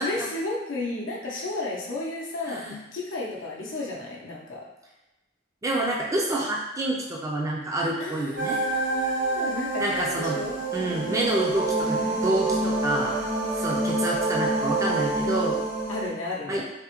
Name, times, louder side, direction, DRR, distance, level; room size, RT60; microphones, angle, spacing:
voice 1, 0.0-4.7 8.0-10.6 11.8-12.7 15.9-16.6, left 2 dB, 90° left, -4 dB, 0.6 m, -33 dB
voice 2, 2.5-2.8 5.6-8.6 9.8-10.4 10.7-13.2 13.6-15.6 16.5-16.6, right 1 dB, 15° right, -3 dB, 0.3 m, -28 dB
sound 1, 8.4-16.1, right 2 dB, 80° right, 1.3 m, -27 dB
3.4 x 2.1 x 2.9 m, 1.0 s
head